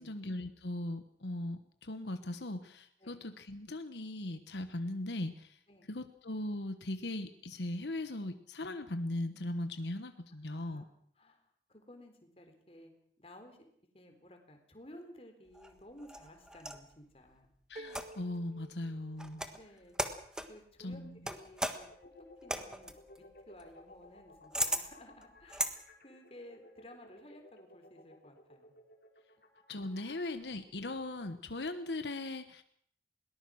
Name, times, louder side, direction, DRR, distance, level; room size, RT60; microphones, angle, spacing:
voice 1, 0.0-5.6 5.9-10.8 17.7-19.5 20.8-21.2 29.7-32.6, left 1 dB, 80° left, 9 dB, 1.2 m, -39 dB
voice 2, 10.4-10.9 11.2-11.4 11.7-12.9 13.2-13.7 13.9-17.5 19.5-20.0 20.5-23.0 23.5-28.7, left 1 dB, 35° left, 5 dB, 3.8 m, -55 dB
sound 1, 15.5-16.9 17.9-18.4 19.2-19.6 19.9-20.6 21.2-25.7, right 1 dB, 5° right, 1.4 m, -37 dB
sound 2, 17.8-19.8, right 2 dB, 40° right, 0.9 m, -52 dB
sound 3, 21.9-30.4, left 2 dB, 55° left, 3.6 m, -57 dB
21.5 x 19.0 x 6.4 m, 0.66 s
head